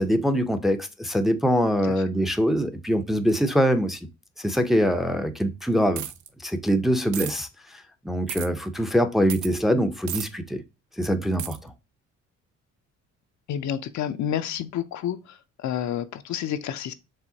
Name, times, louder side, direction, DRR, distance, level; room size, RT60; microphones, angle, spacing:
voice 1, 0.0-4.0 4.4-6.0 6.4-7.5 8.0-10.6 11.0-11.7, equal, ahead, 0.6 m, -23 dB
sound 1, 6.0-6.3 7.1-7.3 8.3-8.5 9.3-9.5 10.1-10.3 11.4-11.6, right 11 dB, 75° right, 0.6 m, -32 dB
voice 2, 13.5-16.9, left 10 dB, 70° left, 0.6 m, -30 dB
4.8 x 3.3 x 2.7 m
cardioid pair, 90°, 30 cm